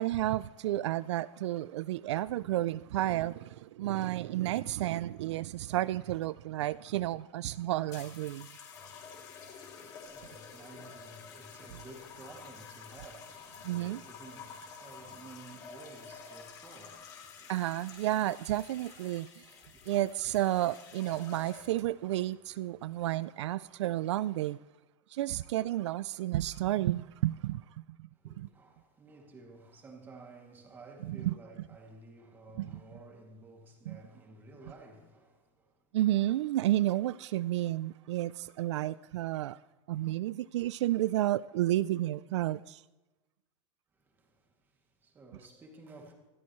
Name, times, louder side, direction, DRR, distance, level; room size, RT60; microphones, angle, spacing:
voice 1, 0.0-8.5 13.6-14.0 17.5-19.4 19.9-24.6 25.1-27.6 28.4-28.5 31.1-31.3 32.6-32.7 33.9-34.0 35.9-39.6 39.9-42.8, right 14 dB, 75° right, 0.4 m, -31 dB
sound 1, 7.9-21.9 22.8-23.1, left 6 dB, 25° left, 3.2 m, -50 dB
voice 2, 9.8-17.5 19.0-20.0 28.1-35.9 43.9-46.1, right 2 dB, 15° right, 2.4 m, -53 dB
26.5 x 13.0 x 3.1 m
supercardioid pair, 180°, 15 cm